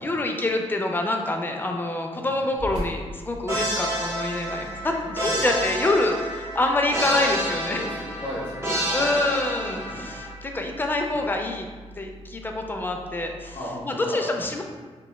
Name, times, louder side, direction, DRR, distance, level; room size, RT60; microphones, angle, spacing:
voice 1, 0.0-7.8 8.9-11.7 12.0-13.6 13.8-14.6, left 2 dB, 20° left, 3 dB, 0.3 m, -26 dB
sound 1, 2.5-13.6, right 1 dB, 85° right, 1.3 m, -42 dB
sound 2, 3.5-10.3, equal, 25° right, 1.0 m, -29 dB
voice 2, 7.7-9.2 9.8-10.1 13.5-14.3, equal, 55° left, -8 dB, 0.7 m, -36 dB
3.0 x 2.1 x 2.2 m, 1.5 s
cardioid pair, 75°, 11 cm